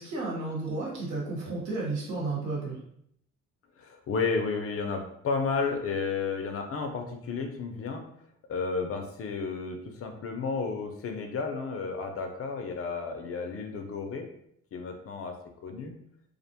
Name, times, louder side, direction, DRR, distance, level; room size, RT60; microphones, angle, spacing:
voice 1, 0.0-2.8, right 3 dB, 70° right, -5 dB, 1.3 m, -32 dB
voice 2, 3.8-8.0 8.5-14.3 14.7-15.4 15.6-15.9, left 4 dB, 50° left, 4 dB, 0.5 m, -32 dB
2.4 x 2.1 x 2.7 m, 0.72 s
cardioid pair, 90°, 30 cm